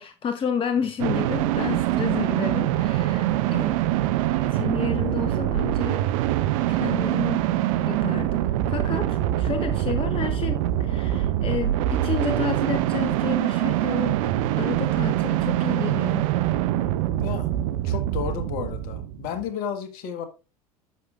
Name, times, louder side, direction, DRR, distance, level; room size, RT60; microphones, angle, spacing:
voice 1, 0.0-3.8 4.4-6.0 6.7-7.5 7.9-14.2 14.6-16.3, left 6 dB, 30° left, 0.9 m, -31 dB
sound 1, 1.0-19.5, right 13 dB, 65° right, 0.6 m, -24 dB
voice 2, 17.1-20.3, left 8 dB, 55° left, 1.5 m, -33 dB
10.0 x 6.6 x 2.4 m
hypercardioid pair, 75°, 19 cm